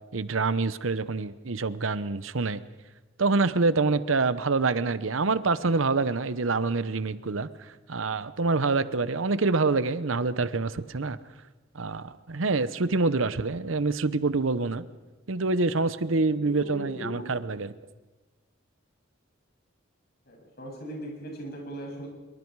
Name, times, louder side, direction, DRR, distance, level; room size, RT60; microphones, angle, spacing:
voice 1, 0.1-2.6 3.2-11.2 11.7-14.8 15.3-17.7, right 3 dB, 80° right, 14 dB, 0.9 m, -26 dB
voice 2, 16.1-17.3 20.3-22.1, equal, 55° left, 0 dB, 7.6 m, -39 dB
25.0 x 23.0 x 4.8 m, 1.2 s
head